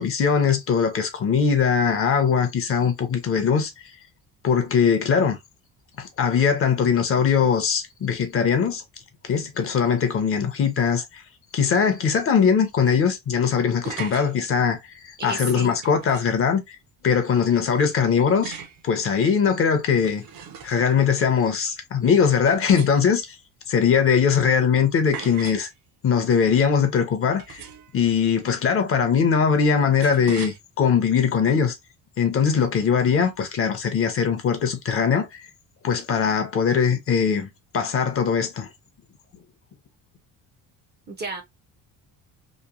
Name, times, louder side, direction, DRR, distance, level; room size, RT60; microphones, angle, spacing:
voice 1, 0.0-3.7 4.4-5.4 6.0-8.8 9.2-11.2 11.5-14.8 15.0-16.8 17.0-18.5 18.8-20.3 20.6-23.3 23.7-25.7 26.0-27.6 27.9-31.7 32.2-35.5 35.8-37.5 37.7-38.7, left 6 dB, 35° left, 0.5 m, -21 dB
sound 1, 13.9-14.3 15.8-16.4 18.4-18.8 19.9-20.9 22.5-23.3 25.1-25.7 27.4-28.0 30.0-30.6, right 7 dB, 65° right, 0.7 m, -38 dB
voice 2, 15.2-15.7 41.1-41.4, right 3 dB, 30° right, 0.4 m, -32 dB
2.9 x 2.0 x 2.3 m
cardioid pair, 135°, 38 cm